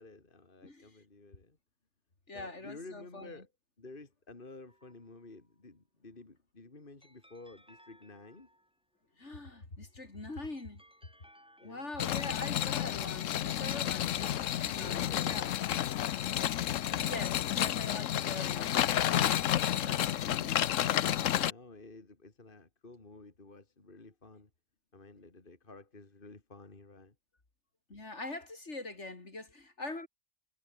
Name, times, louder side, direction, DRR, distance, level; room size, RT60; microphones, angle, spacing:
voice 1, 0.0-1.6 2.3-3.5 3.8-8.5 11.6-12.0 13.9-14.3 14.6-15.4 21.1-24.5 24.9-27.1, left 3 dB, 45° left, 2.8 m, -52 dB
voice 2, 2.3-3.3 9.2-10.8 11.6-15.5 17.0-18.9 19.7-20.7 27.9-30.1, left 2 dB, 65° left, 4.3 m, -43 dB
sound 1, 4.7-5.4 7.0-9.0 9.9-12.7 13.4-17.5 18.1-19.7, equal, 5° right, 7.1 m, -63 dB
sound 2, 12.0-21.5, left 11 dB, 85° left, 1.1 m, -31 dB
omnidirectional pair, 1.3 m